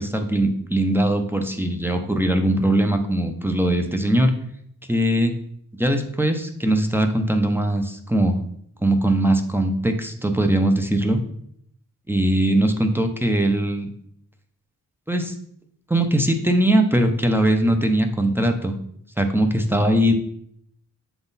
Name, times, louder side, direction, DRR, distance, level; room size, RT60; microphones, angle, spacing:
voice 1, 0.0-4.3 4.9-5.3 5.8-8.4 8.8-11.2 12.1-13.9 15.1-15.3 15.9-18.8 19.2-20.1, right 1 dB, 5° right, 5 dB, 0.5 m, -20 dB
7.0 x 3.8 x 4.0 m, 0.70 s
wide cardioid pair, 140°, 34 cm